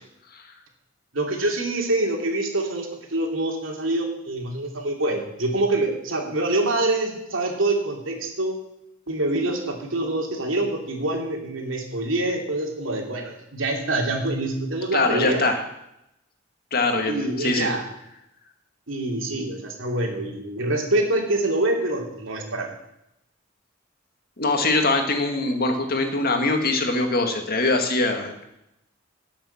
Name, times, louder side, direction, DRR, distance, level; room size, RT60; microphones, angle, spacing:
voice 1, 1.1-8.6 9.1-15.5 17.1-17.8 18.9-22.7, right 2 dB, 75° right, 1 dB, 3.0 m, -25 dB
voice 2, 14.9-15.6 16.7-17.7 24.4-28.4, left 2 dB, 50° left, 5 dB, 2.0 m, -23 dB
18.0 x 7.1 x 7.2 m, 0.85 s
head